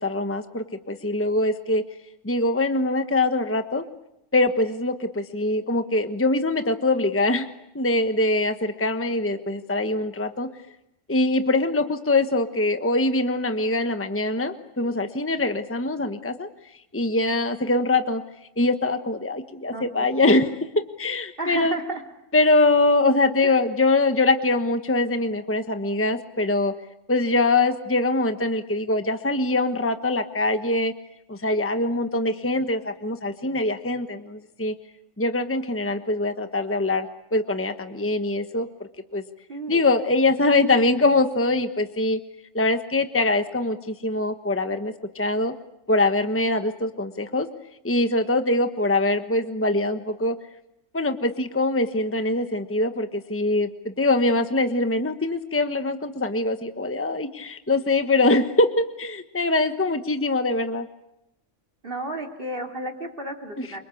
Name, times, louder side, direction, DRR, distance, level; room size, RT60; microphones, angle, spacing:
voice 1, 0.0-1.8 2.2-3.8 4.3-7.5 7.7-10.5 11.1-16.5 16.9-18.2 18.6-20.5 21.0-21.8 22.3-26.7 27.1-30.9 31.3-34.7 35.2-38.7 39.1-39.2 39.7-42.2 42.5-45.5 45.9-47.5 47.8-50.4 50.9-60.9, left 2 dB, 10° left, 8 dB, 1.2 m, -23 dB
voice 2, 19.7-20.2 21.4-22.0 23.4-23.6 39.5-39.8 61.8-63.8, right 2 dB, 45° right, 3 dB, 3.5 m, -32 dB
28.0 x 25.0 x 8.4 m, 0.85 s
omnidirectional pair, 1.3 m